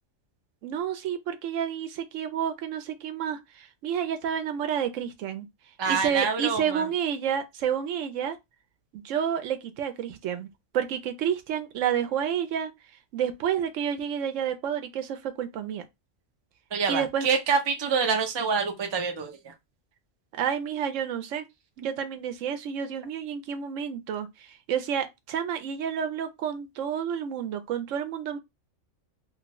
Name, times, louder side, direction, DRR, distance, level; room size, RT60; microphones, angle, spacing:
voice 1, 0.6-5.5 5.9-8.4 8.9-10.5 10.7-12.7 13.1-15.9 16.9-17.3 20.3-21.5 21.8-28.4, right 8 dB, 80° right, 0.9 m, -30 dB
voice 2, 5.8-6.9 16.7-19.5, right 5 dB, 40° right, 0.4 m, -26 dB
2.6 x 2.4 x 2.9 m
omnidirectional pair, 1.3 m